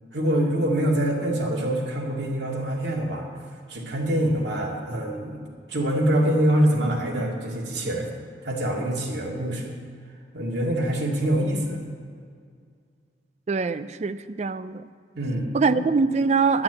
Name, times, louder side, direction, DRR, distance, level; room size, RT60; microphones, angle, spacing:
voice 1, 0.1-3.3 3.7-5.4 5.7-8.1 8.4-9.7 10.3-11.8 15.1-15.9, right 1 dB, 70° right, -2 dB, 2.3 m, -25 dB
voice 2, 13.5-14.9 15.5-16.6, right 4 dB, 40° right, 12 dB, 0.4 m, -23 dB
11.5 x 6.0 x 8.8 m, 2.1 s
head